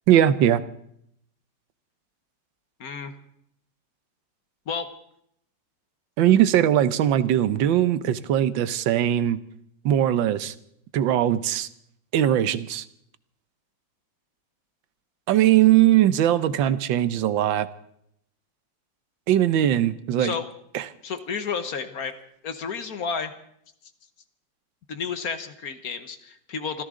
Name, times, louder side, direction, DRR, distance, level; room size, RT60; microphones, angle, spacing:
voice 1, 0.1-0.6 6.2-9.4 9.8-10.5 10.9-11.7 12.1-12.8 15.3-17.7 19.3-20.3 20.7-20.9, right 11 dB, 85° right, 14 dB, 1.5 m, -20 dB
voice 2, 2.8-3.1 4.7-4.9 20.2-20.5 21.0-22.1 22.4-23.3 24.9-26.8, left 6 dB, 55° left, 10 dB, 1.4 m, -31 dB
26.0 x 14.5 x 3.7 m, 0.71 s
omnidirectional pair, 2.0 m